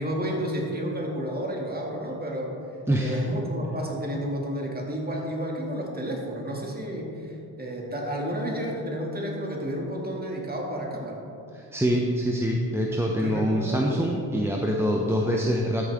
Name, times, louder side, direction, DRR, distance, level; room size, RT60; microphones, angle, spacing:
voice 1, 0.0-2.5 3.0-11.2 13.2-14.0, equal, 20° right, -1 dB, 2.3 m, -31 dB
voice 2, 2.9-3.2 11.5-15.8, equal, 5° right, -1 dB, 0.8 m, -25 dB
13.0 x 6.4 x 3.6 m, 2.7 s
supercardioid pair, 65°, 41 cm